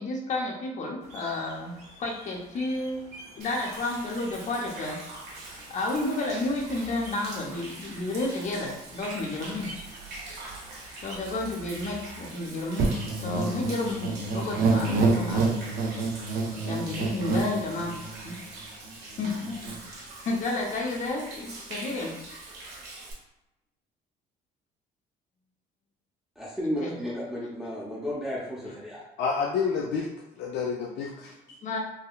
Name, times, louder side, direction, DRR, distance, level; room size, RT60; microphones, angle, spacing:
voice 1, 0.0-1.7 2.0-5.0 5.7-9.7 11.0-15.5 16.6-18.0 18.2-18.4 19.2-19.5 19.9-22.1 26.8-26.9 31.6-31.8, left 2 dB, 45° left, 0 dB, 0.7 m, -31 dB
sound 1, 1.0-11.2, right 1 dB, 40° right, 1.0 m, -49 dB
Human voice / Rain / Stream, 3.4-23.1, right 2 dB, 75° right, 0.9 m, -43 dB
sound 2, 12.8-18.3 18.9-19.0 19.2-19.8, right 3 dB, 60° right, 0.5 m, -27 dB
voice 2, 26.4-29.0, equal, 5° right, -8 dB, 0.6 m, -33 dB
voice 3, 29.2-30.1 30.4-31.6, left 5 dB, 80° left, -1 dB, 0.4 m, -29 dB
3.5 x 2.2 x 2.3 m, 0.93 s
cardioid pair, 110°, 17 cm